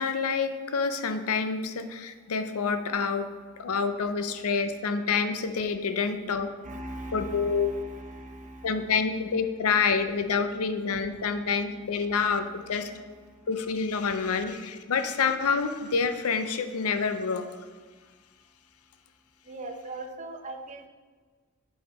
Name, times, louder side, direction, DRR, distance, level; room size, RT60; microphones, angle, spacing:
voice 1, 0.0-3.3 3.6-6.5 7.1-7.7 8.6-12.9 13.5-17.7, left 5 dB, 80° left, 9 dB, 0.6 m, -27 dB
voice 2, 6.6-9.4 10.4-13.5 19.4-20.9, right 2 dB, 35° right, 4 dB, 0.7 m, -42 dB
7.6 x 4.0 x 5.2 m, 1.4 s
head